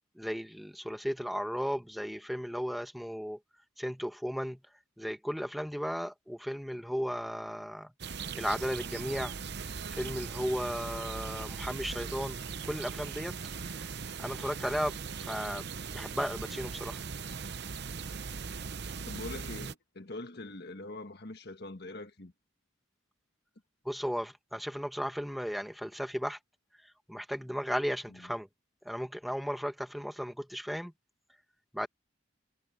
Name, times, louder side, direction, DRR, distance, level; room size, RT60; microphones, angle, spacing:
voice 1, 0.2-3.4 3.8-4.6 5.0-7.9 8.3-9.3 9.9-12.4 12.6-13.3 13.7-13.9 14.2-15.7 15.9-17.0 23.8-26.4 26.8-28.5 28.8-30.9 31.7-31.9, equal, ahead, 1.1 m, -35 dB
sound 1, 8.0-19.7, right 5 dB, 55° right, 0.8 m, -39 dB
voice 2, 19.0-22.3 28.1-28.3, left 2 dB, 55° left, 1.6 m, -43 dB
head